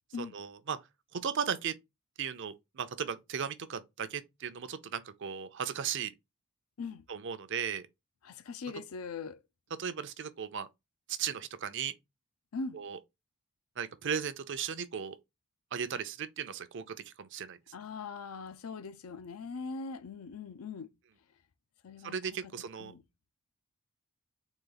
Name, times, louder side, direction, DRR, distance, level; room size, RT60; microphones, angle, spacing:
voice 1, 0.2-0.8 1.1-1.7 2.2-6.1 7.1-7.8 9.8-10.7 11.1-11.9 12.7-13.0 13.8-15.2 15.7-17.6 22.0-22.9, right 7 dB, 55° right, 0.5 m, -36 dB
voice 2, 8.2-9.4 12.5-12.8 17.7-20.9 21.8-22.1 22.4-22.5 22.8-23.0, left 4 dB, 75° left, 0.5 m, -41 dB
4.0 x 2.8 x 3.9 m
head